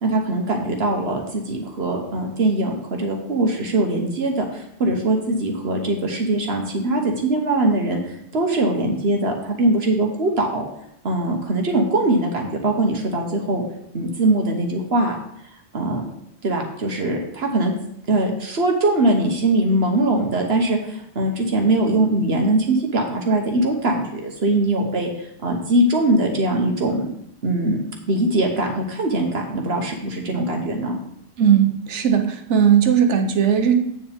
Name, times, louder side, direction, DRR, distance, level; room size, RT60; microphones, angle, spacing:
voice 1, 0.0-10.6 11.0-13.6 13.9-15.1 15.7-16.0 16.4-17.7 18.1-27.1 27.4-31.0, right 2 dB, 65° right, 2 dB, 1.4 m, -21 dB
voice 2, 31.4-33.7, right 8 dB, 90° right, 6 dB, 1.2 m, -17 dB
8.4 x 7.1 x 3.5 m, 0.74 s
omnidirectional pair, 1.2 m